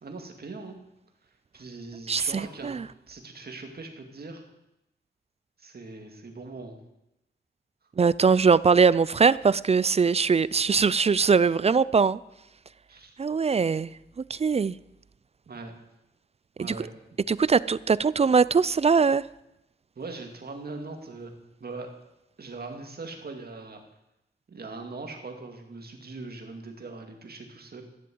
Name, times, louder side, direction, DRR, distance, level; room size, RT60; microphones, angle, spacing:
voice 1, 0.0-0.8 1.2-2.8 3.1-4.4 5.6-6.8 12.9-13.1 15.5-15.7 16.6-16.9 20.0-21.3 21.6-21.9 22.4-23.8 24.5-27.8, right 3 dB, 55° right, 2.4 m, -41 dB
voice 2, 2.1-2.8 8.0-12.2 13.2-13.9 14.3-14.8 16.6-16.7 17.3-19.2, right 5 dB, 35° right, 0.4 m, -21 dB
14.0 x 7.6 x 7.8 m
cardioid pair, 75°, 19 cm